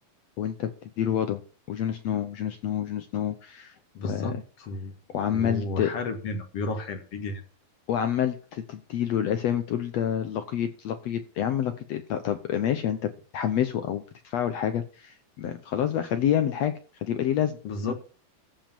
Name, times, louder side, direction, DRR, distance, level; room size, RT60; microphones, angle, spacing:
voice 1, 0.4-1.4 1.7-3.7 4.0-4.4 5.1-5.9 7.9-16.7 17.0-17.6 17.8-17.9, left 9 dB, 80° left, 8 dB, 1.5 m, -28 dB
voice 2, 3.9-4.9 5.3-7.4 17.6-17.9, left 2 dB, 50° left, 6 dB, 2.1 m, -33 dB
15.0 x 5.5 x 7.1 m, 0.37 s
omnidirectional pair, 4.3 m